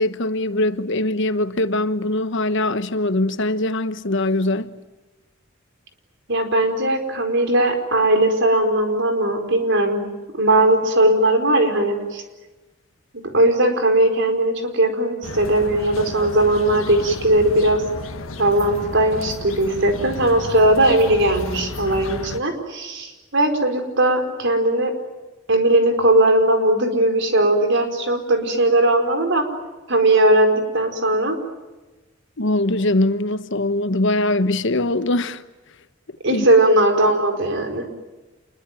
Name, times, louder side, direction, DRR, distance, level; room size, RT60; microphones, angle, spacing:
voice 1, 0.0-4.7 32.4-35.4 36.3-36.5, left 2 dB, 65° left, 1.2 m, -22 dB
voice 2, 6.3-10.0 10.4-12.2 13.3-17.8 18.4-24.9 25.5-29.4 29.9-31.4 36.2-37.8, right 1 dB, 65° right, 4.8 m, -18 dB
sound 1, 15.2-22.4, left 2 dB, 90° left, 1.7 m, -33 dB
28.0 x 22.0 x 9.2 m
head